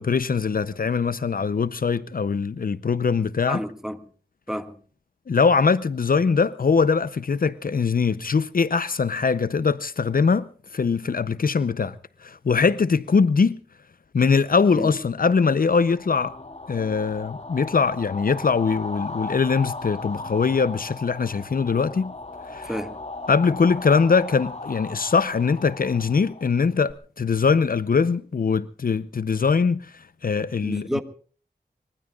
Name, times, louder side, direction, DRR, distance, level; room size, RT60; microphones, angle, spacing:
voice 1, 0.0-3.6 5.3-12.0 12.2-13.6 14.1-16.3 16.7-22.1 22.5-22.7 23.3-30.9, left 5 dB, 60° left, 0.7 m, -22 dB
voice 2, 3.5-4.0 4.5-4.8 14.8-14.9 22.7-23.0 30.6-31.0, equal, 5° right, 1.9 m, -29 dB
sound 1, 15.8-26.9, left 3 dB, 45° left, 3.7 m, -37 dB
25.0 x 23.5 x 2.4 m
wide cardioid pair, 85°, 16 cm